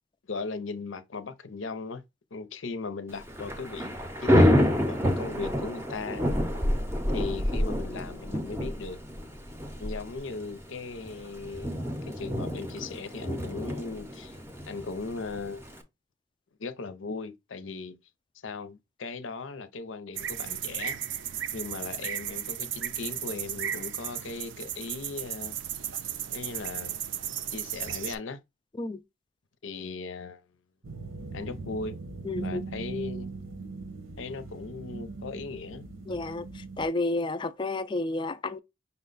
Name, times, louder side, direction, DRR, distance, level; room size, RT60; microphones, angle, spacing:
voice 1, 0.3-2.0 2.3-6.2 7.1-9.0 9.8-11.7 12.0-14.4 14.7-15.7 16.6-17.9 18.4-21.0 21.5-25.6 26.3-27.0 27.5-28.4 29.6-30.4 31.3-32.0 32.4-33.3 34.2-35.9, left 4 dB, 75° left, 0.6 m, -38 dB
Thunder / Rain, 3.2-15.8, equal, 10° right, 0.6 m, -28 dB
sound 1, 20.2-28.2, right 10 dB, 65° right, 0.5 m, -35 dB
sound 2, 30.8-36.9, right 3 dB, 85° right, 0.9 m, -40 dB
voice 2, 32.2-32.6 36.1-38.6, left 2 dB, 25° left, 0.3 m, -31 dB
5.6 x 2.2 x 3.9 m
head